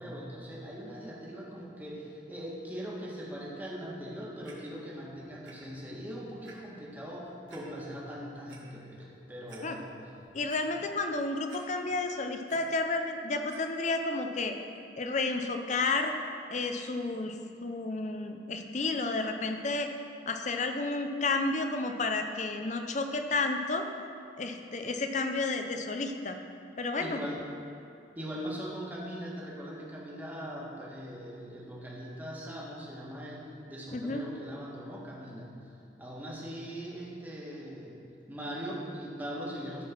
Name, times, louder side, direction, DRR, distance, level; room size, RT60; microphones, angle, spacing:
voice 1, 0.0-10.1 27.0-27.4 28.1-35.5 36.0-39.8, equal, 10° right, -4 dB, 1.6 m, -41 dB
Clock, 4.4-4.5 5.4-5.5 6.0-6.1 6.4-6.5 7.5-7.6 8.3-8.6 9.1-9.2 9.5-9.6 10.1-10.6 11.5-12.0 12.3-12.6 13.5-13.6 14.3-14.4, right 4 dB, 90° right, 1.9 m, -52 dB
voice 2, 10.3-14.5 15.0-16.1 16.5-19.9 20.3-23.9 24.4-26.4 26.8-27.2 33.9-34.2, left 3 dB, 40° left, 5 dB, 0.6 m, -31 dB
13.5 x 4.6 x 6.0 m, 2.6 s
head